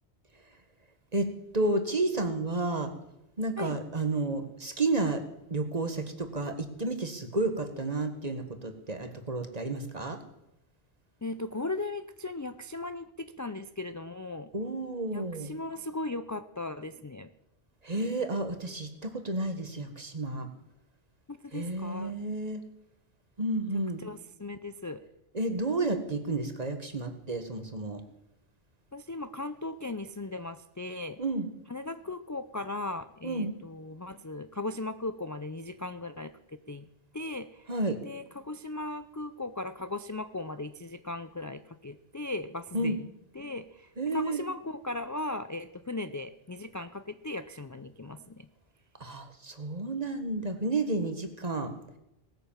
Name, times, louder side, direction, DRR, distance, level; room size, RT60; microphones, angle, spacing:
voice 1, 1.1-2.9 3.4-5.2 5.5-10.2 14.5-15.5 17.8-20.5 21.5-22.6 23.4-24.0 25.3-28.0 31.2-31.5 33.2-33.5 37.7-38.0 42.7-43.0 44.0-44.4 49.0-51.7, right 2 dB, 40° right, 7 dB, 1.6 m, -31 dB
voice 2, 11.2-14.5 15.1-17.3 21.3-22.2 24.0-25.0 28.9-31.2 31.7-36.9 37.1-37.7 38.0-43.1 43.3-48.5, left 2 dB, 25° left, 10 dB, 0.4 m, -37 dB
18.5 x 9.3 x 7.3 m, 0.87 s
omnidirectional pair, 1.1 m